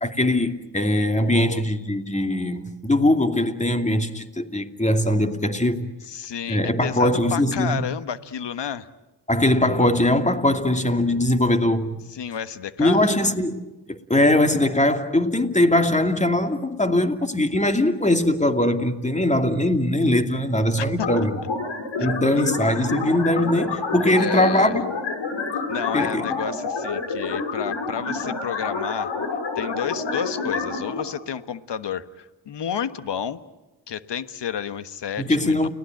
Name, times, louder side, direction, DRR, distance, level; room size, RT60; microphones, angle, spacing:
voice 1, 0.0-5.9 6.5-7.8 9.3-12.0 12.8-21.3 22.0-24.9 25.9-26.2 35.2-35.7, left 1 dB, 15° left, 2.6 m, -21 dB
voice 2, 1.2-1.6 6.1-8.9 12.1-13.1 20.8-21.1 22.3-22.5 24.1-24.8 25.7-29.1 29.6-33.4 33.9-35.7, left 8 dB, 60° left, 1.4 m, -31 dB
sound 1, 21.0-31.0, left 4 dB, 80° left, 4.4 m, -28 dB
30.0 x 19.0 x 9.1 m
supercardioid pair, 45°, 46 cm